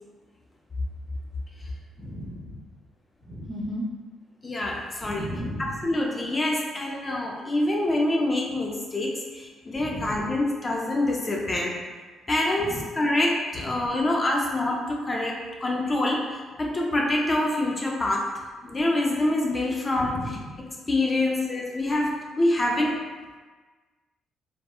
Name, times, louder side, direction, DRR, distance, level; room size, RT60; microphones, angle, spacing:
voice 1, 2.0-2.6 3.2-3.8 5.0-5.8 9.8-10.2 12.6-12.8 13.5-13.9 20.0-20.5, equal, 5° right, -6 dB, 0.7 m, -35 dB
voice 2, 4.4-5.3 5.8-11.8 12.3-18.3 18.6-20.4 20.9-23.0, left 1 dB, 25° left, -2 dB, 0.4 m, -26 dB
2.8 x 2.2 x 2.2 m, 1.4 s
cardioid pair, 90°, 0 cm